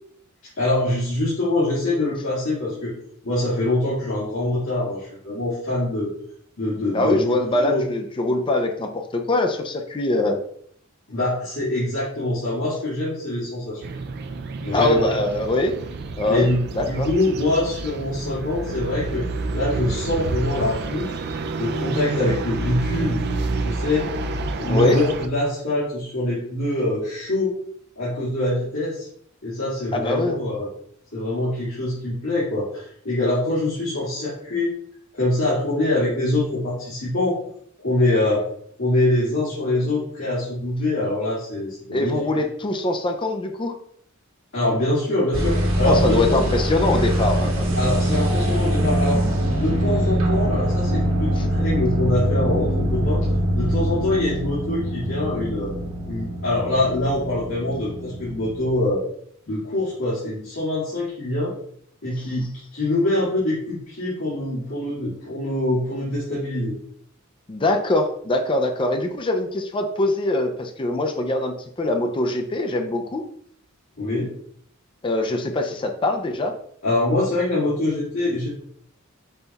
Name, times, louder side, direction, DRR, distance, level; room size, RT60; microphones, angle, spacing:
voice 1, 0.6-2.9 3.2-6.1 6.6-7.3 7.6-7.8 11.1-13.8 14.6-15.0 16.3-19.3 19.5-21.1 21.6-23.2 23.6-24.2 24.6-27.6 28.0-29.1 29.4-30.7 31.1-34.7 35.1-37.4 37.8-38.4 38.8-42.1 44.5-46.4 47.8-49.3 49.5-53.3 53.6-55.7 56.1-59.0 59.5-61.5 62.0-66.7 74.0-74.3 76.8-78.5, left 1 dB, 75° left, -10 dB, 1.9 m, -24 dB
voice 2, 6.9-10.4 14.7-15.7 16.2-16.5 16.7-17.1 24.7-25.0 29.9-30.4 41.9-43.7 45.8-47.7 51.4-51.5 67.5-73.2 75.0-76.5, left 2 dB, 25° left, 4 dB, 0.4 m, -23 dB
sound 1, 13.8-25.3, right 3 dB, 50° right, 0.4 m, -29 dB
sound 2, 45.3-58.7, right 1 dB, 85° right, 1.4 m, -23 dB
5.5 x 2.3 x 4.0 m, 0.66 s
head